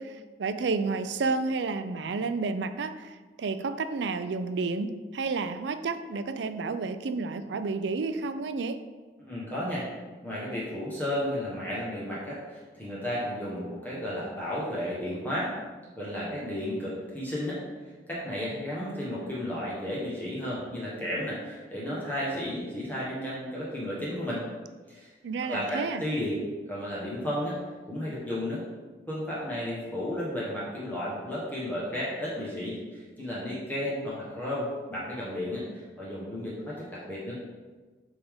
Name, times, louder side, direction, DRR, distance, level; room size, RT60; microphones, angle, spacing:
voice 1, 0.0-8.8 25.2-26.0, right 4 dB, 90° right, 10 dB, 0.4 m, -31 dB
voice 2, 9.2-9.9 10.2-15.5 16.0-17.6 18.1-24.4 24.9-25.1 25.5-26.4 26.7-27.6 27.9-28.6 29.1-37.4, left 1 dB, 10° left, -7 dB, 1.1 m, -33 dB
7.8 x 3.6 x 3.5 m, 1.3 s
head